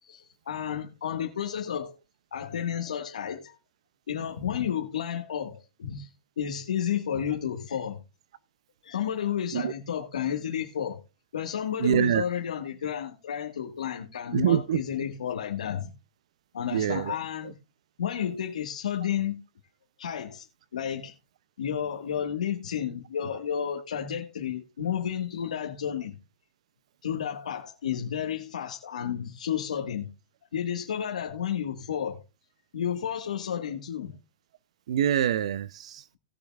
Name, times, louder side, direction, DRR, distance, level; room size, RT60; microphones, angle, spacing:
voice 1, 0.0-1.9 2.3-3.5 4.1-8.0 8.8-11.0 11.3-15.9 16.5-17.6 18.0-19.4 20.0-20.5 20.7-21.1 21.6-26.2 27.0-30.1 30.5-32.2 32.7-34.2, left 9 dB, 85° left, 1.5 m, -31 dB
voice 2, 11.8-12.2 14.3-14.8 16.7-17.1 34.9-36.0, right 10 dB, 60° right, 0.5 m, -25 dB
19.0 x 7.1 x 2.3 m
hypercardioid pair, 155°, 4 cm